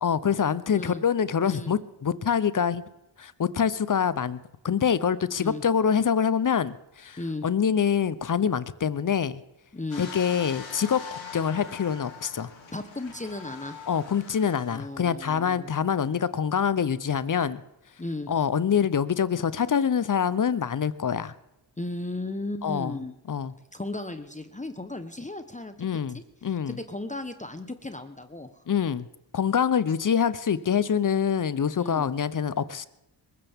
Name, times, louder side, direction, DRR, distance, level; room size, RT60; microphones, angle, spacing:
voice 1, 0.0-2.8 3.2-4.4 4.6-9.4 10.0-12.5 13.9-17.6 18.3-21.3 22.6-23.0 23.3-23.5 25.8-26.8 28.7-29.1 29.3-32.9, left 7 dB, 40° left, 16 dB, 0.8 m, -25 dB
voice 2, 9.7-10.1 12.7-13.8 14.7-15.7 18.0-18.3 21.8-23.2 23.7-25.8 26.1-26.2 26.7-28.5 31.8-32.1, left 2 dB, 15° left, 8 dB, 1.1 m, -35 dB
sound 1, 9.9-14.9 15.5-15.6, left 6 dB, 70° left, 3.1 m, -42 dB
22.0 x 14.5 x 3.6 m, 0.90 s
cardioid pair, 50°, 47 cm